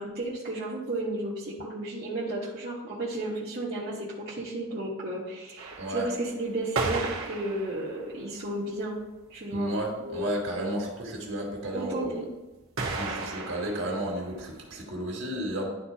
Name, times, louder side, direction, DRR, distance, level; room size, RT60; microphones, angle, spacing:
voice 1, 0.0-9.0 9.3-10.3 10.6-10.8 11.7-12.3, right 1 dB, 50° right, -8 dB, 1.4 m, -33 dB
sound 1, 5.6-8.4 9.0-9.1 9.3-9.4 9.6-9.7 10.0-10.4 12.8-14.7, right 3 dB, 80° right, 1.3 m, -34 dB
voice 2, 5.8-6.1 9.5-12.3 12.8-15.7, right 1 dB, 65° right, -1 dB, 2.1 m, -33 dB
11.5 x 4.3 x 2.8 m, 1.1 s
head